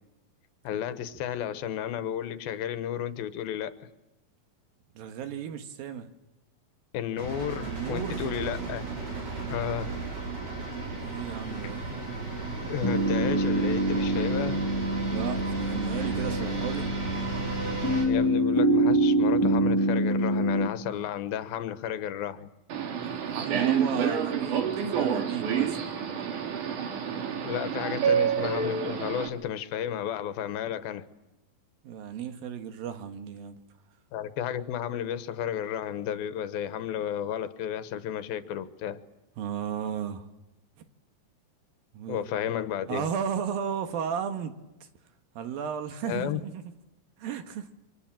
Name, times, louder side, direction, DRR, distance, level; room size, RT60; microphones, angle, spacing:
voice 1, 0.6-3.9 6.9-8.8 9.5-9.9 11.6-11.7 12.7-14.7 18.0-22.5 27.4-31.1 34.1-39.0 42.1-43.1 46.0-46.4, left 10 dB, 85° left, 2.9 m, -33 dB
voice 2, 5.0-6.1 7.6-8.2 10.8-11.8 15.0-16.9 23.0-25.8 31.8-33.6 39.4-40.3 41.9-42.3 42.9-44.5 45.4-46.7 47.2-47.7, right 8 dB, 80° right, 3.3 m, -34 dB
sound 1, 7.2-18.0, right 3 dB, 45° right, 7.2 m, -34 dB
sound 2, 12.8-20.7, right 1 dB, 15° left, 0.9 m, -25 dB
Subway metro underground, 22.7-29.3, right 7 dB, 65° right, 3.2 m, -28 dB
28.0 x 24.5 x 7.5 m
omnidirectional pair, 4.1 m